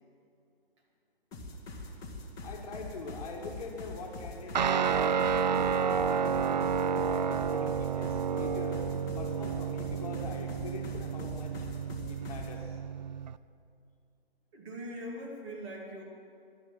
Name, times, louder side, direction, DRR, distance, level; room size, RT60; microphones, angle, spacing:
sound 1, 1.3-12.6, left 1 dB, 10° left, 1.5 m, -43 dB
voice 1, 2.4-6.8 7.1-8.8 9.2-11.7 12.1-12.8, left 4 dB, 35° left, 1 dB, 2.0 m, -44 dB
Guitar, 4.5-13.4, right 6 dB, 45° right, 0.4 m, -30 dB
voice 2, 14.5-16.0, equal, 30° right, -2 dB, 2.9 m, -41 dB
12.0 x 12.0 x 9.6 m, 2.5 s
figure-of-eight pair, 145°, 30 cm